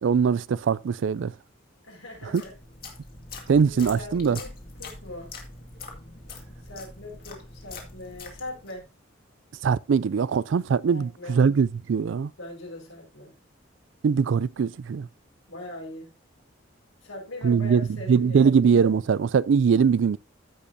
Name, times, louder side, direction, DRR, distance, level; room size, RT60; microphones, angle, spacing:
voice 1, 0.0-1.3 2.3-2.4 3.5-4.4 9.6-12.3 14.0-15.1 17.4-17.8 18.1-20.2, right 6 dB, 65° right, 0.3 m, -21 dB
voice 2, 1.8-2.5 3.6-4.5 4.8-5.3 6.6-8.8 10.9-11.4 12.4-13.4 15.5-16.1 17.0-18.6, left 1 dB, 85° left, 5.1 m, -41 dB
sound 1, 2.1-8.8, left 3 dB, 45° left, 2.0 m, -43 dB
14.5 x 5.3 x 2.7 m
head